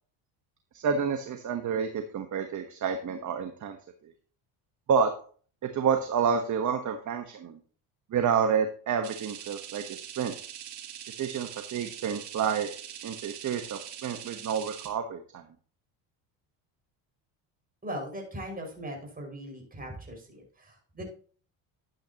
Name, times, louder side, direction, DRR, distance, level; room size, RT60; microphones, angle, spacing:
voice 1, 0.7-3.8 4.0-4.1 4.9-5.1 5.6-7.6 8.1-10.3 11.1-12.7 13.0-15.4, right 6 dB, 40° right, 6 dB, 1.2 m, -29 dB
sound 1, 9.0-14.9, right 10 dB, 85° right, 2.7 m, -43 dB
voice 2, 17.8-21.1, equal, 20° right, 1 dB, 5.8 m, -39 dB
12.0 x 8.9 x 3.0 m, 0.43 s
supercardioid pair, 100°, 44 cm